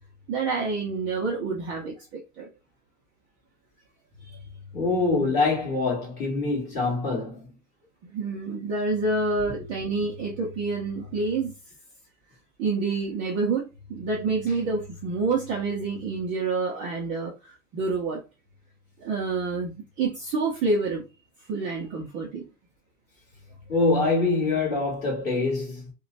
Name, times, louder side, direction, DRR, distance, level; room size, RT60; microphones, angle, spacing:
voice 1, 0.3-2.5 4.2-4.4 8.0-11.5 12.6-18.2 19.0-21.0 21.5-22.5, right 3 dB, 20° right, 0.4 m, -28 dB
voice 2, 4.7-7.4 23.7-25.8, left 3 dB, 25° left, 1.8 m, -24 dB
3.0 x 2.2 x 3.9 m
supercardioid pair, 170°, 39 cm